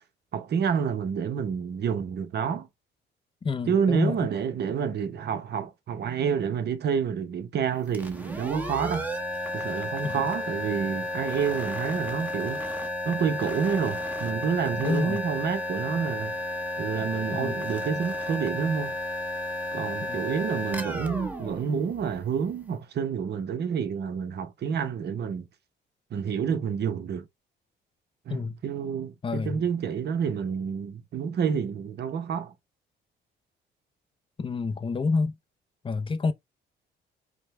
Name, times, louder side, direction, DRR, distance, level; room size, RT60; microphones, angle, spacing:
voice 1, 0.3-2.7 3.7-9.1 9.5-12.6 13.0-16.3 16.8-19.0 19.7-25.5 26.1-27.3 28.3-32.5, right 7 dB, 55° right, 0.8 m, -29 dB
voice 2, 3.4-4.2 10.0-10.2 14.8-15.2 17.3-17.6 20.1-20.2 28.3-28.6 29.2-29.6 34.4-35.4 35.8-36.3, left 4 dB, 25° left, 0.5 m, -28 dB
sound 1, 7.9-22.5, left 1 dB, 10° right, 0.9 m, -33 dB
5.1 x 2.1 x 3.2 m
cardioid pair, 90°, 20 cm